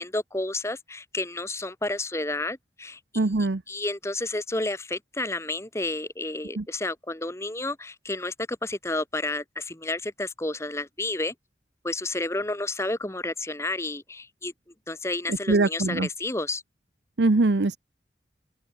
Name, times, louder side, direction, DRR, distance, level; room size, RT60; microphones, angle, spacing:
voice 1, 0.0-3.2 3.7-11.3 11.8-14.5 14.9-16.6, left 2 dB, 15° left, 1.5 m, -31 dB
voice 2, 3.2-3.6 6.6-6.7 15.3-16.1 17.2-17.8, right 2 dB, 80° right, 0.8 m, -22 dB
open air
head